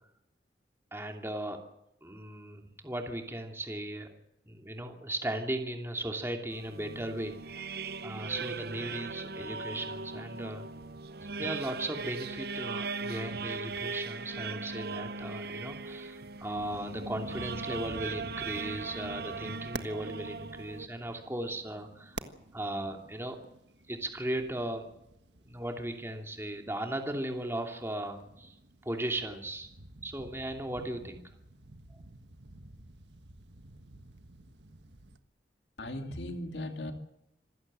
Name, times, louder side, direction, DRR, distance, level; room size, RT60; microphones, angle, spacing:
voice 1, 0.9-1.6 2.0-4.1 4.5-7.6 8.0-10.7 11.4-22.2 22.5-23.4 23.9-24.9 25.4-28.6 28.8-29.7 30.0-31.2, right 1 dB, 15° right, 3 dB, 2.8 m, -37 dB
sound 1, 6.5-20.9, right 4 dB, 60° right, 0.8 m, -39 dB
sound 2, 16.5-35.2, right 2 dB, 85° right, 1.5 m, -50 dB
voice 2, 35.8-36.9, left 1 dB, 80° left, 5 dB, 2.6 m, -37 dB
26.5 x 16.0 x 7.6 m, 0.85 s
head